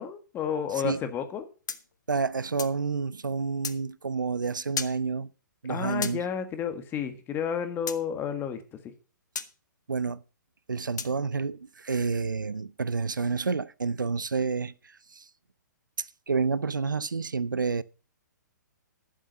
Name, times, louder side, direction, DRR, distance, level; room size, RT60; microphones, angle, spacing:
voice 1, 0.0-1.5 5.7-8.9, left 7 dB, 20° left, 1.7 m, -31 dB
sound 1, 1.7-2.8 3.6-3.8 4.8-5.0 6.0-6.2 7.9-8.0 9.4-9.5 11.0-11.2, left 6 dB, 70° left, 1.2 m, -34 dB
voice 2, 2.1-5.3 5.6-6.2 9.9-10.2 10.7-15.2 16.0-17.8, right 4 dB, 85° right, 0.6 m, -29 dB
12.0 x 7.6 x 5.4 m
figure-of-eight pair, 125°, 10 cm